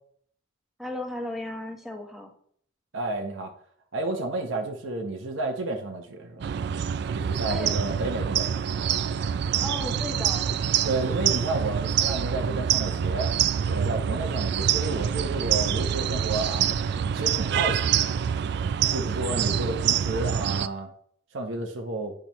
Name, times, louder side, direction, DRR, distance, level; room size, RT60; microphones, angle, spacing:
voice 1, 0.8-2.3 7.5-7.7 9.6-10.6, left 1 dB, ahead, 1 dB, 1.1 m, -35 dB
voice 2, 2.9-3.5 3.9-6.5 7.2-9.0 10.8-13.3 13.7-16.7 17.1-18.1 18.9-20.9 21.3-22.1, right 2 dB, 90° right, 3 dB, 1.0 m, -31 dB
sound 1, 6.4-20.7, right 8 dB, 60° right, 0.3 m, -26 dB
9.0 x 5.9 x 3.0 m, 0.62 s
head